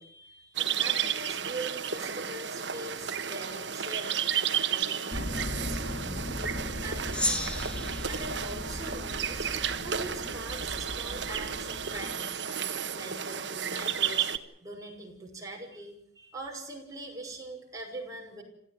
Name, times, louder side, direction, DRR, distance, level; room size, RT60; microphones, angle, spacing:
voice 1, 0.0-4.2 4.7-7.6 8.1-9.5 9.8-12.4 12.9-14.3 14.6-18.4, right 2 dB, 20° right, 0 dB, 6.0 m, -42 dB
sound 1, 0.5-14.4, right 8 dB, 65° right, 1.4 m, -32 dB
sound 2, 5.1-12.2, left 1 dB, 45° left, 2.8 m, -38 dB
Gong, 7.1-9.8, left 1 dB, 5° left, 2.3 m, -35 dB
27.0 x 15.0 x 9.5 m, 0.72 s
head